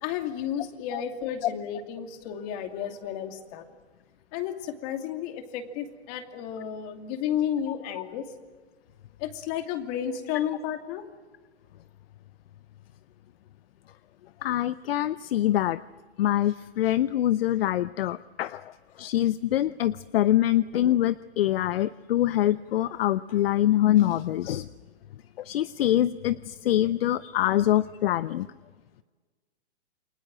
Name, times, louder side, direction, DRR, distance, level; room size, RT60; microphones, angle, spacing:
voice 1, 0.0-3.6 4.3-8.3 9.2-11.1, left 9 dB, 35° left, 6 dB, 2.6 m, -32 dB
voice 2, 14.4-15.8 16.2-24.7 25.4-28.5, left 13 dB, 60° left, 16 dB, 0.7 m, -24 dB
29.0 x 21.5 x 7.5 m, 1.4 s
hypercardioid pair, 145°, 33 cm